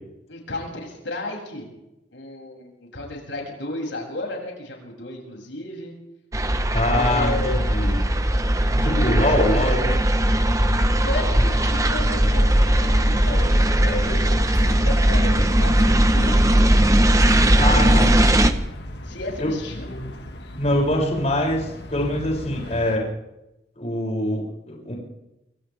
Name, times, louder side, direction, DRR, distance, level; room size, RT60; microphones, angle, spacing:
voice 1, 0.3-1.7 2.1-5.9 6.9-8.0 8.9-9.7 11.0-16.9 17.5-18.1 19.0-20.0, left 1 dB, 90° left, -1 dB, 7.7 m, -33 dB
sound 1, 6.3-18.5, right 1 dB, 20° right, 1.2 m, -18 dB
voice 2, 6.7-8.0 8.8-9.8 17.6-18.2 19.4-19.5 20.6-23.1 23.8-24.9, left 1 dB, 40° left, -2 dB, 7.5 m, -24 dB
sound 2, 7.4-23.0, equal, 60° left, 2.2 m, -38 dB
29.0 x 25.0 x 3.7 m, 0.91 s
head